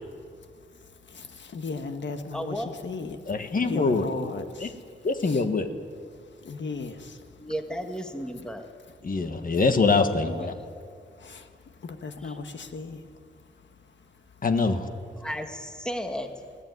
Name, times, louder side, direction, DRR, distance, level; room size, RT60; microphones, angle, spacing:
voice 1, 0.3-5.4 6.1-7.5 9.1-9.6 10.7-14.4, left 4 dB, 70° left, 7 dB, 1.6 m, -38 dB
voice 2, 2.3-2.8 7.4-8.7 12.2-12.3 15.2-16.3, equal, 5° left, 5 dB, 1.6 m, -33 dB
voice 3, 3.3-4.1 4.6-4.7 5.0-5.7 9.0-10.5 14.4-14.8, left 4 dB, 45° left, 7 dB, 1.5 m, -24 dB
21.5 x 17.0 x 9.5 m, 2.1 s
wide cardioid pair, 145°, 19 cm